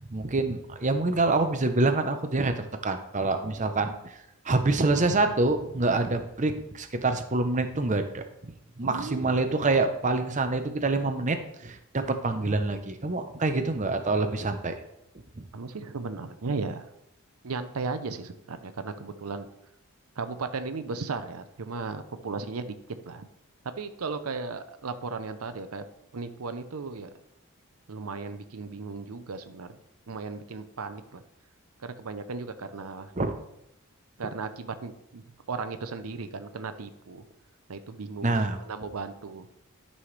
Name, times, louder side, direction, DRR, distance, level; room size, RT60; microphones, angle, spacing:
voice 1, 0.1-4.1 4.4-14.7 15.4-15.5 33.1-33.4 38.2-38.6, right 3 dB, 35° right, 7 dB, 0.7 m, -26 dB
voice 2, 8.8-9.3 15.5-16.9 17.4-19.5 20.2-22.7 23.1-23.3 23.8-25.8 26.1-27.1 27.9-29.7 30.1-31.2 31.8-33.1 34.2-37.2 37.7-39.5, right 4 dB, 80° right, 10 dB, 0.6 m, -36 dB
11.5 x 5.6 x 3.3 m, 0.82 s
head